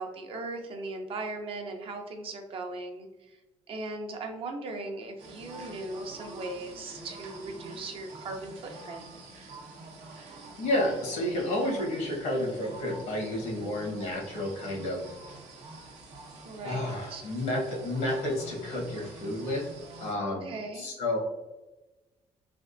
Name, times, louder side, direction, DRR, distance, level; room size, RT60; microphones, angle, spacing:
voice 1, 0.0-3.4 3.7-9.0 16.4-17.2 20.2-20.9, right 2 dB, 50° right, 3 dB, 0.6 m, -38 dB
sound 1, 5.2-20.1, right 2 dB, 80° right, 0.8 m, -46 dB
voice 2, 10.6-15.1 16.6-21.2, left 1 dB, 80° left, -1 dB, 1.2 m, -31 dB
3.4 x 2.4 x 2.5 m, 1.1 s
cardioid pair, 115°, 12 cm